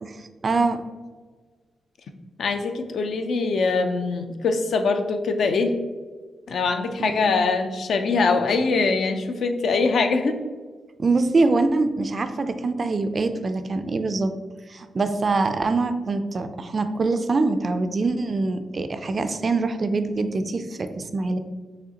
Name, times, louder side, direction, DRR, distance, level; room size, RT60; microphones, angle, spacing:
voice 1, 0.0-0.8 7.0-7.3 11.0-14.3 14.7-21.4, right 3 dB, 40° right, 9 dB, 0.3 m, -24 dB
voice 2, 2.4-5.7 6.5-10.4, left 4 dB, 65° left, 6 dB, 0.4 m, -23 dB
4.9 x 3.2 x 2.8 m, 1.4 s
wide cardioid pair, 120°, 0 cm